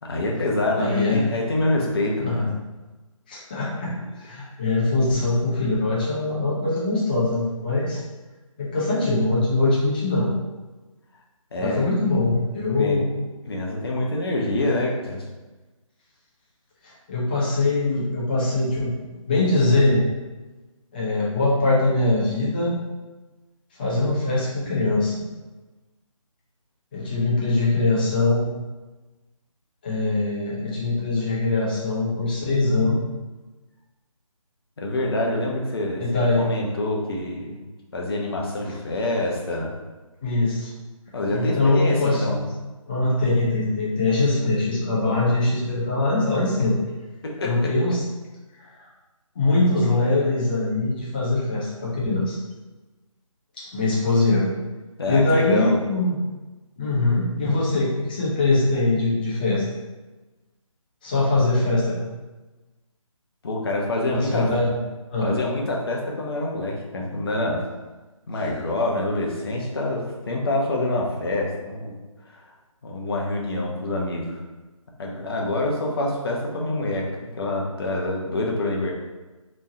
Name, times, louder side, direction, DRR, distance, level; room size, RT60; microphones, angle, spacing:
voice 1, 0.0-2.5 11.5-11.8 12.8-13.2 13.5-15.2 34.8-36.0 36.4-37.6 37.9-39.8 41.1-42.4 47.4-47.7 55.0-55.7 63.4-64.5 65.2-67.6 68.3-71.9 72.8-74.4 75.0-77.1 77.3-78.9, left 2 dB, 45° left, -1 dB, 0.8 m, -26 dB
voice 2, 0.8-1.2 2.2-2.5 3.3-3.9 4.2-8.0 8.6-10.3 11.6-13.0 16.8-20.0 20.9-22.7 23.7-25.2 26.9-28.4 29.8-33.0 36.0-36.5 40.2-40.7 41.3-42.5 42.9-46.8 47.4-48.0 49.4-52.4 53.6-54.5 55.1-56.2 56.8-59.6 61.0-62.0 64.2-64.8 65.1-65.3, left 2 dB, 15° left, -6 dB, 0.5 m, -22 dB
3.4 x 3.1 x 2.6 m, 1.2 s
figure-of-eight pair, 155°, 18 cm